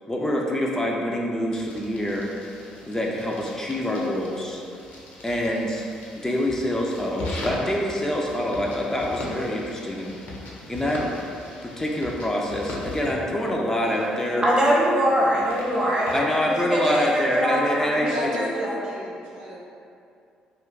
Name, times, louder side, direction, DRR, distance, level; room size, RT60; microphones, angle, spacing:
voice 1, 0.1-2.3 2.8-4.6 5.2-5.8 6.2-10.2 10.7-11.0 11.6-14.5 16.1-18.1, left 1 dB, 15° left, -2 dB, 0.4 m, -26 dB
sound 1, 1.5-16.2, left 1 dB, 65° left, 0.6 m, -39 dB
voice 2, 14.4-18.7, equal, 25° right, -5 dB, 0.9 m, -23 dB
voice 3, 18.0-19.6, equal, 65° right, -6 dB, 0.6 m, -32 dB
2.4 x 2.2 x 3.7 m, 2.6 s
hypercardioid pair, 55°, 3 cm